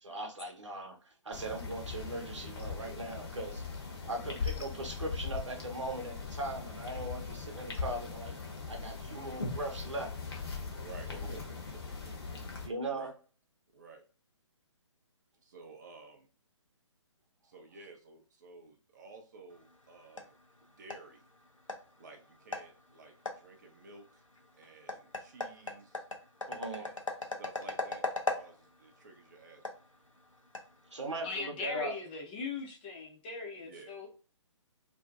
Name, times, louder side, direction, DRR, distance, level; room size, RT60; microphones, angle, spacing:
voice 1, 0.0-0.9 1.2-3.6 4.1-8.3 8.7-10.1 11.1-11.3 12.6-13.1 26.5-26.9 30.9-31.9, right 2 dB, 70° right, 2 dB, 0.8 m, -39 dB
sound 1, 1.3-12.7, left 5 dB, 50° left, 0.8 m, -40 dB
voice 2, 3.8-4.2 10.7-12.4 12.9-13.1 13.7-14.0 15.4-16.3 17.4-20.3 20.8-21.2 22.0-24.2 24.6-26.0 26.7-28.0 28.3-29.6 31.1-31.3 33.6-34.0, right 3 dB, 35° right, 3 dB, 0.5 m, -53 dB
sound 2, 19.5-31.3, left 3 dB, 85° left, 0.5 m, -41 dB
voice 3, 31.2-34.1, left 4 dB, 20° left, 0 dB, 0.5 m, -39 dB
2.5 x 2.1 x 2.4 m, 0.39 s
figure-of-eight pair, 135°, 16 cm